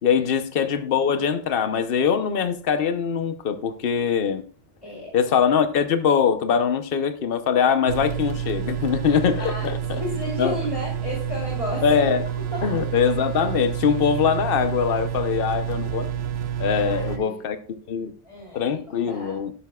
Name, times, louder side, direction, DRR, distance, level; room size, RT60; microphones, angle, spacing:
voice 1, 0.0-4.4 5.1-10.0 10.4-10.6 11.8-12.2 12.6-16.1 16.6-17.6 17.9-18.1 18.5-19.5, left 7 dB, 50° left, 1.0 m, -22 dB
voice 2, 4.8-5.1 9.0-12.1 12.5-12.7 16.8-17.3 18.2-19.4, left 1 dB, 25° left, 3.1 m, -33 dB
sound 1, 7.9-17.2, right 9 dB, 75° right, 1.1 m, -29 dB
12.5 x 11.0 x 2.4 m
omnidirectional pair, 1.3 m